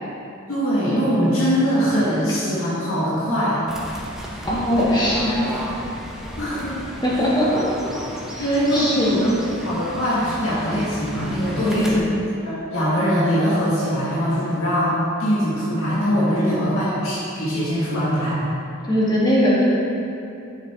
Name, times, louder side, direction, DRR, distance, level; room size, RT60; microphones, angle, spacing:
voice 1, 0.5-3.6 6.4-6.9 7.1-7.2 8.4-12.0 12.7-18.4, equal, 75° left, -9 dB, 1.8 m, -22 dB
Fowl / Bird, 3.7-12.0, equal, ahead, 0.9 m, -34 dB
voice 2, 4.5-5.5 7.0-7.7 8.3-9.1 11.6-11.9 16.4-16.6 18.9-19.8, equal, 20° left, -7 dB, 1.9 m, -20 dB
9.4 x 7.4 x 3.5 m, 2.7 s
head